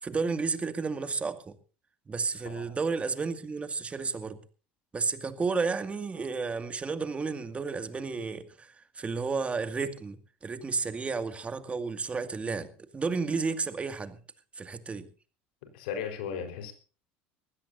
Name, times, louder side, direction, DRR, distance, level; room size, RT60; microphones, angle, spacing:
voice 1, 0.0-1.5 2.1-4.4 4.9-14.2 14.6-15.1, right 4 dB, 25° right, 2.1 m, -32 dB
voice 2, 15.6-16.7, left 7 dB, 85° left, 4.4 m, -36 dB
22.0 x 16.0 x 2.7 m
supercardioid pair, 90°, 5 cm